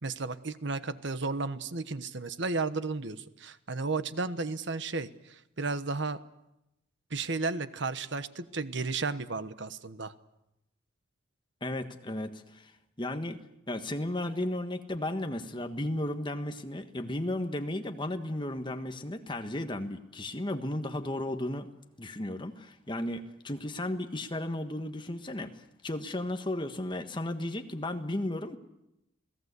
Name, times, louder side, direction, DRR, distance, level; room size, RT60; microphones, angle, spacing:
voice 1, 0.0-6.2 7.1-10.1, right 3 dB, 60° right, 12 dB, 1.2 m, -33 dB
voice 2, 11.6-12.7 13.0-13.4 13.7-21.7 22.0-28.6, left 1 dB, 25° left, 7 dB, 1.5 m, -34 dB
29.0 x 18.5 x 8.3 m, 0.87 s
head